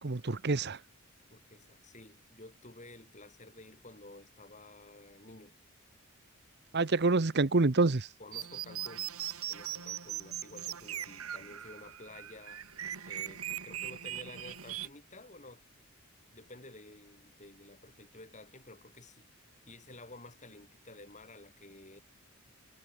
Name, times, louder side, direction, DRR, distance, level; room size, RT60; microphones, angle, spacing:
voice 1, 0.0-0.8 6.7-8.1, right 3 dB, 50° right, 0.9 m, -27 dB
voice 2, 1.3-5.6 8.2-9.1 9.5-12.6 13.0-15.6 16.3-19.3 19.7-22.0, left 2 dB, 35° left, 5.2 m, -52 dB
sound 1, 8.3-14.9, right 11 dB, 75° right, 2.1 m, -40 dB
head